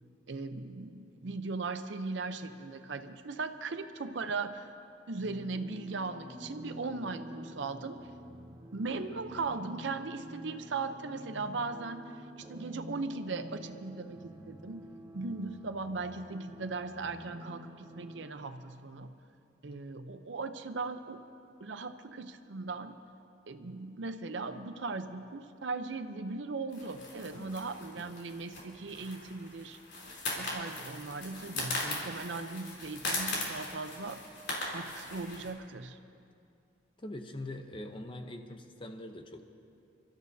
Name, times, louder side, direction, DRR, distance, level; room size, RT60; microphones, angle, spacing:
voice 1, 0.3-4.7 5.1-8.0 8.7-14.9 15.1-19.1 19.6-21.2 21.6-23.0 23.5-29.8 30.4-34.2 34.7-36.0, right 3 dB, 85° right, 9 dB, 0.7 m, -38 dB
sound 1, 5.2-18.3, equal, 20° right, 1.0 m, -48 dB
sound 2, 26.7-35.5, left 2 dB, 70° left, 3.5 m, -39 dB
voice 2, 37.0-39.5, left 1 dB, 30° left, 5 dB, 0.8 m, -43 dB
28.0 x 13.0 x 2.8 m, 2.4 s
head